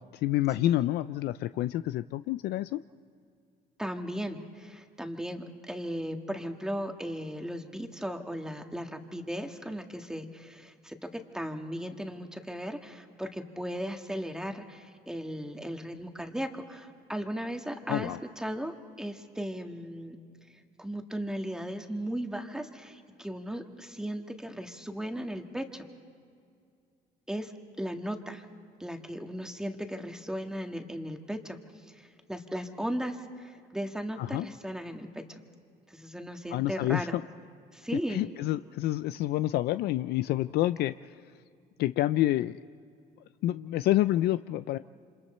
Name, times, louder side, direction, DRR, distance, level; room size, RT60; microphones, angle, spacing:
voice 1, 0.0-2.8 17.9-18.2 34.2-34.5 36.5-37.2 38.1-41.2 41.8-42.6 43.4-44.8, left 14 dB, 75° left, 13 dB, 0.4 m, -28 dB
voice 2, 3.8-20.2 20.8-25.9 27.3-27.5 27.8-28.4 28.8-31.6 31.9-32.0 32.3-35.4 35.9-37.1 37.7-38.3, equal, 5° right, 4 dB, 1.6 m, -36 dB
27.5 x 26.5 x 4.4 m, 2.3 s
cardioid pair, 110°, 17 cm